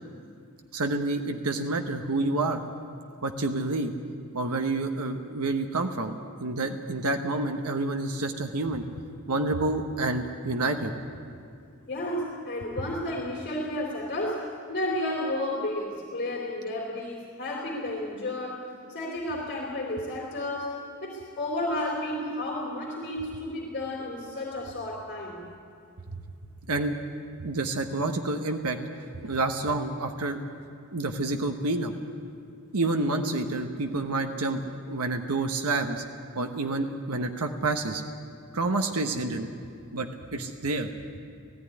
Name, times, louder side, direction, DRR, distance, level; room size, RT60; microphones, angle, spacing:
voice 1, 0.7-2.6 3.2-3.9 4.3-8.8 9.3-10.9 26.7-26.9 27.4-30.4 30.9-31.9 32.7-34.6 34.9-36.0 36.3-38.0 38.5-39.5 39.9-40.9, right 2 dB, 80° right, 5 dB, 1.1 m, -28 dB
voice 2, 11.9-18.6 18.9-25.4, left 1 dB, 45° left, -3 dB, 3.4 m, -32 dB
18.0 x 15.0 x 9.9 m, 2.4 s
head